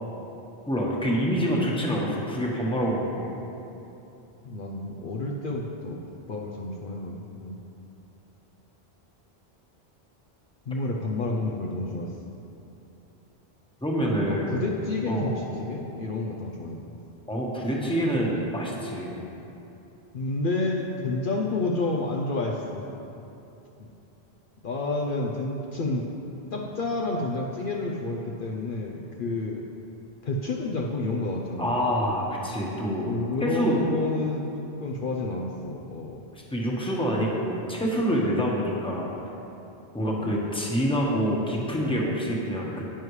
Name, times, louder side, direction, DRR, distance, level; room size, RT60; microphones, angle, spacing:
voice 1, 0.7-3.3 13.8-14.6 15.1-15.4 17.3-19.1 31.6-33.1 33.4-33.8 36.3-39.1 39.9-42.9, equal, 5° left, -3 dB, 1.2 m, -26 dB
voice 2, 4.4-6.0 6.3-7.6 10.7-12.1 14.3-16.8 20.1-22.8 23.8-23.9 24.6-26.1 26.5-29.6 30.2-31.8 33.1-36.2 40.1-40.3, left 2 dB, 60° left, -1 dB, 0.8 m, -30 dB
10.0 x 9.4 x 3.2 m, 2.9 s
omnidirectional pair, 1.1 m